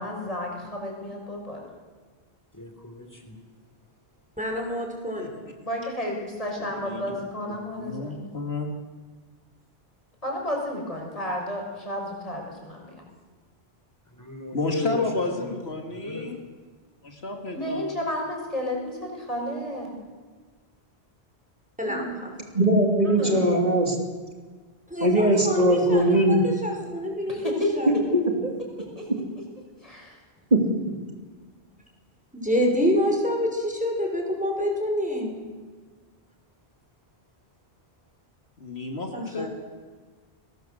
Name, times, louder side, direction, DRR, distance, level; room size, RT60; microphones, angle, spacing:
voice 1, 0.0-1.7 5.6-8.3 10.2-13.0 17.5-19.9 21.8-22.1 23.0-23.6 27.3-27.7 29.0-29.1 29.8-30.2, left 1 dB, 35° left, 0 dB, 6.6 m, -32 dB
voice 2, 2.5-3.4 14.1-15.4 15.9-16.3, left 2 dB, 15° left, 4 dB, 4.2 m, -35 dB
voice 3, 4.4-5.4 21.8-22.3 24.9-27.9 32.3-35.3 39.1-39.5, equal, 5° right, 1 dB, 6.0 m, -27 dB
voice 4, 6.7-7.2 7.5-8.7 14.5-16.4 17.0-17.9 38.6-39.5, left 3 dB, 75° left, 3 dB, 2.8 m, -31 dB
voice 5, 22.5-24.0 25.0-26.4 27.9-28.5 30.5-30.6, right 1 dB, 40° right, 2 dB, 3.3 m, -20 dB
29.0 x 20.0 x 8.0 m, 1.5 s
omnidirectional pair, 1.1 m